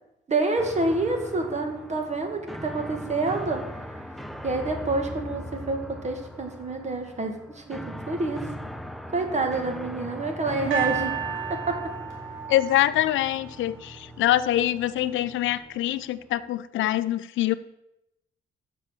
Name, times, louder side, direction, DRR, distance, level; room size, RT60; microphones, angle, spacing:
voice 1, 0.3-3.6 4.4-8.4 9.1-11.1 11.5-11.7, right 3 dB, 35° right, 5 dB, 2.0 m, -28 dB
sound 1, 0.6-16.5, equal, ahead, 0.8 m, -40 dB
sound 2, 10.7-13.9 14.7-14.8, right 9 dB, 75° right, 2.6 m, -32 dB
voice 2, 12.5-17.5, left 13 dB, 75° left, 16 dB, 0.5 m, -24 dB
7.2 x 6.3 x 7.6 m, 0.86 s
cardioid pair, 90°, 20 cm